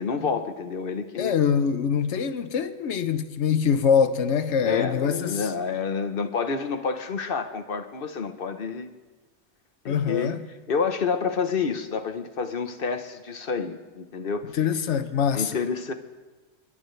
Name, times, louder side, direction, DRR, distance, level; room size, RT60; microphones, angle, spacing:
voice 1, 0.0-1.3 4.6-8.9 9.8-10.3 10.7-14.5 15.3-15.9, left 5 dB, 55° left, 1.1 m, -29 dB
voice 2, 1.2-5.5 9.9-10.4 14.5-15.6, left 7 dB, 80° left, 1.1 m, -24 dB
25.0 x 12.0 x 3.3 m
omnidirectional pair, 1.2 m